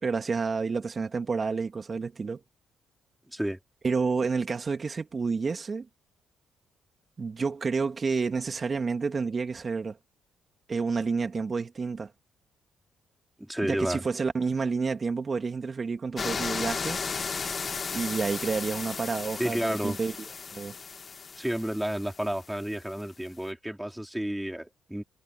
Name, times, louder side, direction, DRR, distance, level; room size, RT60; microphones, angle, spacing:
voice 1, 0.0-2.4 3.8-5.9 7.2-10.0 10.7-12.1 13.6-17.0 17.9-20.2 20.5-20.7, right 4 dB, 35° right, 2.8 m, -29 dB
voice 2, 3.3-3.6 13.4-14.0 19.4-20.0 21.4-25.0, right 1 dB, 5° right, 4.4 m, -31 dB
sound 1, 16.2-22.7 23.0-23.1, left 5 dB, 40° left, 2.0 m, -35 dB
cardioid pair, 90°, 0 cm